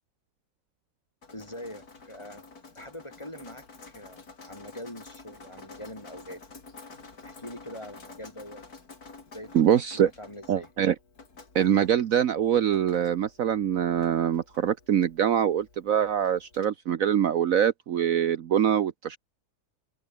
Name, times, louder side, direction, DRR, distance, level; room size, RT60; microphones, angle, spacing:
Drip, 1.2-16.7, left 4 dB, 70° left, 3.7 m, -50 dB
voice 1, 1.3-2.5 2.8-6.5 7.2-8.6 9.3-9.8 10.2-10.7, left 1 dB, 15° left, 5.8 m, -43 dB
voice 2, 9.5-10.1 10.5-10.9 11.5-19.2, right 9 dB, 60° right, 1.2 m, -24 dB
omnidirectional pair, 1.7 m